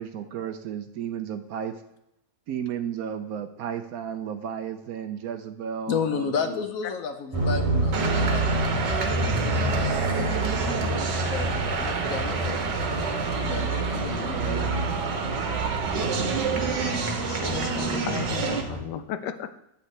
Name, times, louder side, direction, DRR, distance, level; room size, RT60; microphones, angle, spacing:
voice 1, 0.0-1.8 2.5-6.6 13.9-14.7, right 8 dB, 70° right, 8 dB, 0.9 m, -34 dB
voice 2, 5.9-8.8 11.3-12.8 13.4-14.7 18.5-18.6, left 6 dB, 65° left, 7 dB, 1.0 m, -32 dB
sound 1, 7.3-18.8, right 1 dB, 25° right, 1.0 m, -29 dB
sound 2, 7.9-18.6, right 5 dB, 90° right, 1.7 m, -28 dB
voice 3, 17.3-19.6, left 9 dB, 80° left, 11 dB, 1.2 m, -35 dB
8.6 x 7.9 x 3.2 m, 0.84 s
omnidirectional pair, 1.8 m